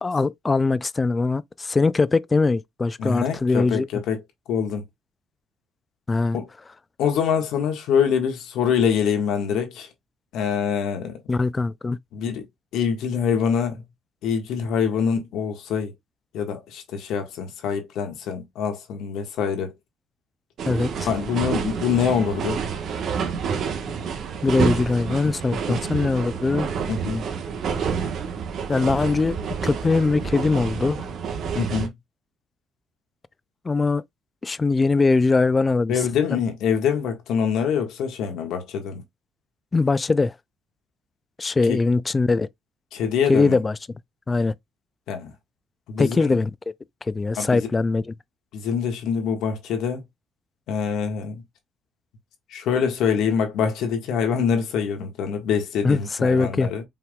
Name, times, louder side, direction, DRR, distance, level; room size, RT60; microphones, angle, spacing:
voice 1, 0.0-3.9 6.1-6.4 11.3-12.0 20.7-21.1 24.4-26.7 28.7-29.4 29.6-31.1 33.6-34.0 34.4-36.0 36.3-36.4 39.7-40.3 41.4-42.5 43.3-43.8 44.3-44.5 46.0-46.5 47.1-48.1 55.8-56.7, left 3 dB, 25° left, 0.3 m, -21 dB
voice 2, 3.0-4.2 4.5-4.9 6.3-6.5 7.0-9.9 10.3-11.2 12.1-12.4 12.7-13.8 14.2-15.9 16.3-19.7 21.0-22.6 25.7-25.8 26.9-27.2 31.5-31.9 35.9-39.0 41.7-41.8 42.9-43.6 45.1-45.3 45.9-46.3 47.4-47.7 48.5-50.0 50.7-51.4 52.5-56.8, left 7 dB, 80° left, 1.5 m, -25 dB
sound 1, 20.6-31.9, right 6 dB, 60° right, 1.2 m, -28 dB
5.6 x 3.6 x 2.3 m
cardioid pair, 110°, 0 cm